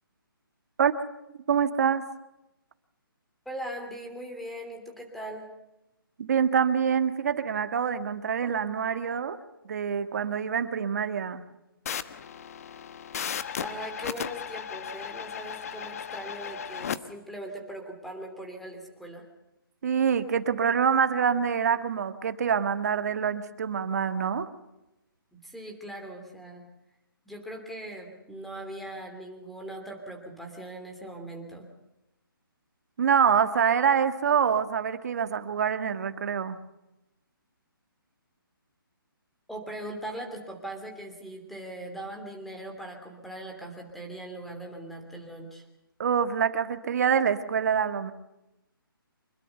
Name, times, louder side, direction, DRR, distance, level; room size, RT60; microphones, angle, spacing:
voice 1, 1.3-2.1 6.2-9.4 9.7-11.4 19.8-24.5 33.0-36.6 46.0-48.1, right 7 dB, 45° right, 10 dB, 1.7 m, -25 dB
voice 2, 3.4-5.5 13.6-19.3 25.3-26.7 27.3-31.7 39.5-45.7, right 1 dB, ahead, 3 dB, 2.9 m, -40 dB
sound 1, 11.9-17.0, left 8 dB, 40° left, 1.2 m, -36 dB
25.5 x 21.5 x 6.9 m, 0.93 s
hypercardioid pair, 165°, 12 cm